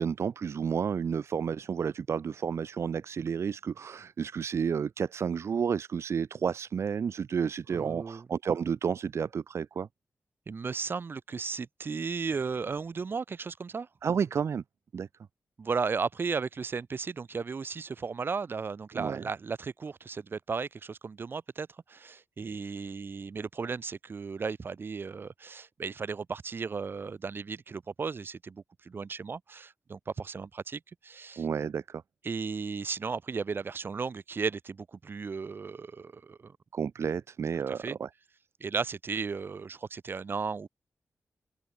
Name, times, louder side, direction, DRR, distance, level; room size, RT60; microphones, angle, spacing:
voice 1, 0.0-9.9 14.0-14.6 14.9-15.1 18.9-19.2 31.4-32.0 36.7-38.1, right 6 dB, 60° right, 0.8 m, -31 dB
voice 2, 7.7-8.3 10.5-13.9 15.6-31.5 32.2-36.6 37.7-38.0 38.6-40.7, right 5 dB, 45° right, 2.0 m, -35 dB
wide cardioid pair, 135°, 5 cm